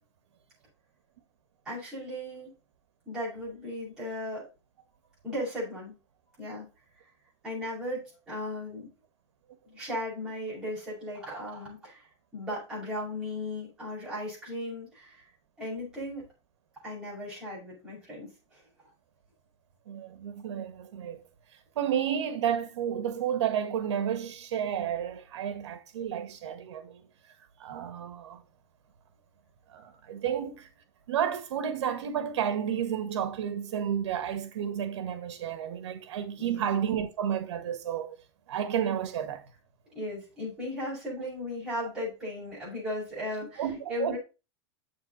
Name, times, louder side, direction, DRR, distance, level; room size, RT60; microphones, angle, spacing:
voice 1, 1.6-2.5 3.0-4.5 5.2-5.9 6.4-6.6 7.4-8.9 9.6-12.1 12.3-15.2 15.6-16.2 16.8-18.6 36.4-36.6 39.9-44.2, left 1 dB, 5° right, 6.6 m, -36 dB
voice 2, 19.9-21.2 21.8-27.0 27.6-28.4 29.7-30.7 31.1-38.2 38.5-39.4 43.6-44.2, right 9 dB, 80° right, 2.0 m, -31 dB
9.2 x 6.8 x 4.1 m
supercardioid pair, 170°, 14 cm